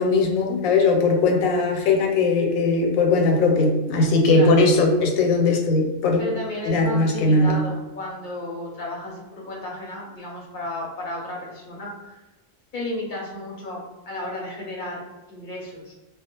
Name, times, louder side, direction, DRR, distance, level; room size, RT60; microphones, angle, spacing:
voice 1, 0.0-6.2 6.6-7.6, left 3 dB, 85° left, 2 dB, 1.0 m, -19 dB
voice 2, 4.3-4.6 6.2-12.2 12.7-15.9, left 1 dB, 50° left, -3 dB, 0.7 m, -33 dB
2.3 x 2.2 x 2.8 m, 1.1 s
omnidirectional pair, 1.4 m